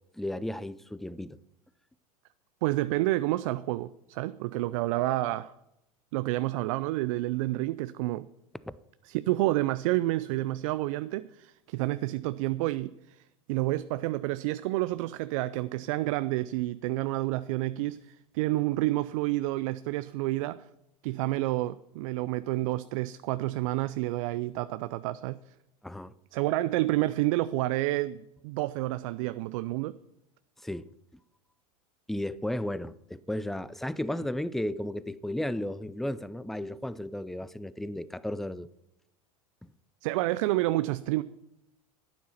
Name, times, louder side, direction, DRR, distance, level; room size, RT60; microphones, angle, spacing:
voice 1, 0.1-1.4 8.7-8.8 25.8-26.1 30.6-30.9 32.1-38.7 39.6-39.7, left 1 dB, ahead, 0.4 m, -34 dB
voice 2, 2.6-5.5 6.1-8.3 9.1-13.2 13.5-20.7 21.0-25.4 26.3-30.0 40.0-41.2, right 17 dB, 60° right, 0.5 m, -29 dB
11.5 x 9.3 x 5.8 m
hypercardioid pair, 95°, 19 cm